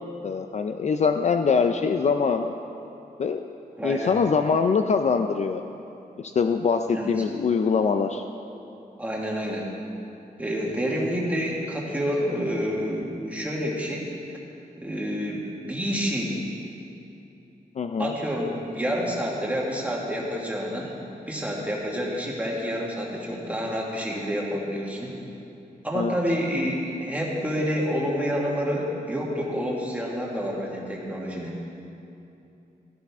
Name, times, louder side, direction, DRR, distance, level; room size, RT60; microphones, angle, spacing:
voice 1, 0.2-2.5 3.2-3.4 3.8-5.6 6.2-8.2 17.8-18.1 25.9-26.2, left 5 dB, 45° left, 7 dB, 0.4 m, -23 dB
voice 2, 3.8-4.2 6.9-7.1 9.0-9.7 10.4-14.1 14.8-16.4 18.0-20.9 21.3-25.1 25.8-31.6, equal, 10° right, -3 dB, 1.8 m, -28 dB
15.5 x 13.0 x 3.6 m, 2.8 s
wide cardioid pair, 180°, 16 cm